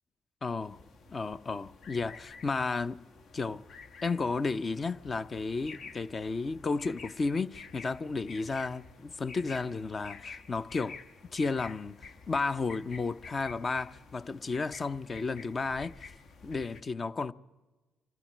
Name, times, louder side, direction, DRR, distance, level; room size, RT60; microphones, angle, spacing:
voice 1, 0.4-0.8 1.1-3.0 3.3-3.6 4.0-11.0 11.3-16.1 16.4-17.3, left 4 dB, 35° left, 0.6 m, -33 dB
sound 1, 0.6-16.8, left 5 dB, 65° left, 1.3 m, -50 dB
26.0 x 12.0 x 9.8 m
cardioid pair, 90°, 0 cm